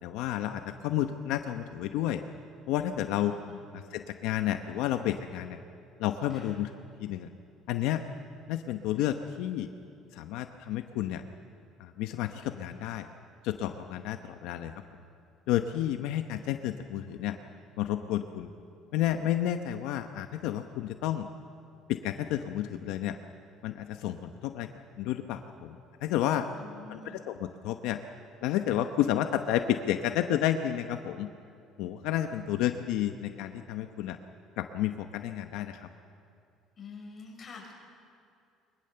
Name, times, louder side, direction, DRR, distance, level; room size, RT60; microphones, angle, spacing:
voice 1, 0.0-2.2 2.7-3.3 3.9-5.6 6.0-6.7 7.0-7.3 7.7-8.0 8.5-9.7 10.1-11.2 11.8-13.1 13.4-14.7 15.5-17.4 17.8-18.5 18.9-21.3 21.9-23.2 23.6-24.7 25.0-26.5 26.9-28.0 28.4-31.3 31.8-34.2 34.6-35.9, left 12 dB, 80° left, 7 dB, 0.9 m, -31 dB
voice 2, 3.2-3.6 3.8-3.9 6.3-6.6 26.5-27.2 36.8-37.7, left 5 dB, 25° left, -1 dB, 5.7 m, -47 dB
22.0 x 22.0 x 6.9 m, 2.6 s
cardioid pair, 150°, 0 cm